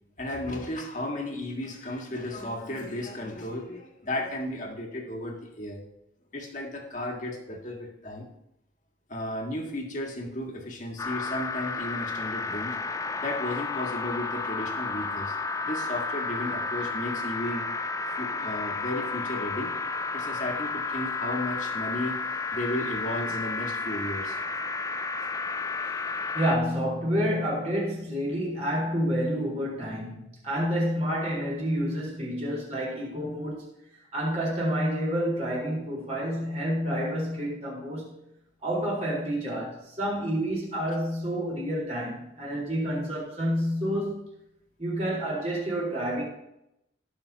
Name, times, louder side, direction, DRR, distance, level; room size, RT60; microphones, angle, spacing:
voice 1, 0.2-5.8 6.3-8.3 9.1-12.8 13.2-15.4 15.6-17.6 18.1-19.7 20.1-22.2 22.5-24.4 25.2-25.3, left 1 dB, 40° left, 1.8 m, -34 dB
sound 1, 11.0-26.6, left 4 dB, 15° left, 0.3 m, -32 dB
voice 2, 26.3-33.7 34.1-38.1 38.6-44.2 44.8-46.2, equal, 35° right, 4.2 m, -29 dB
18.5 x 6.2 x 2.9 m
head